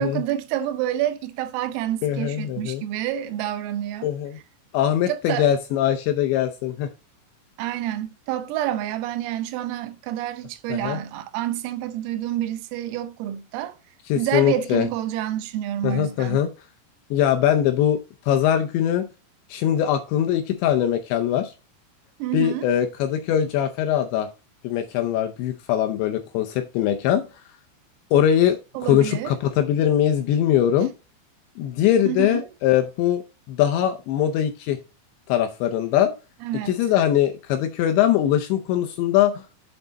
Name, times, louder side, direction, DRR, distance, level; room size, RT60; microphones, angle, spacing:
voice 1, 0.0-4.1 5.1-5.5 7.6-13.8 14.2-16.5 22.2-22.7 28.8-29.3 32.1-32.4 36.4-36.8, right 12 dB, 90° right, 3.5 m, -28 dB
voice 2, 2.0-2.8 4.0-4.4 4.7-6.9 10.7-11.0 14.1-14.9 15.8-16.5 17.1-19.1 19.5-21.5 22.3-24.3 24.6-27.3 28.1-30.9 31.6-33.2 33.5-34.8 35.3-36.1 36.7-39.4, left 10 dB, 80° left, 2.6 m, -22 dB
7.9 x 5.8 x 4.0 m
omnidirectional pair, 5.9 m